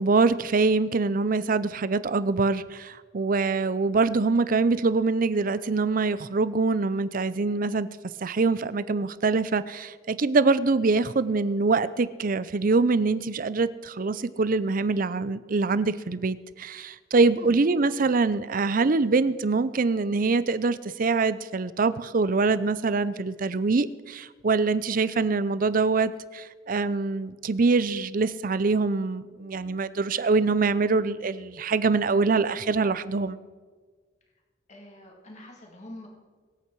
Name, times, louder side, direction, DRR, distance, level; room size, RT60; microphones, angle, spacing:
voice 1, 0.0-7.9 8.2-33.4, right 3 dB, 50° right, 16 dB, 0.5 m, -24 dB
voice 2, 34.7-36.1, left 1 dB, 40° left, 0 dB, 2.2 m, -45 dB
23.0 x 8.5 x 4.7 m, 1.5 s
head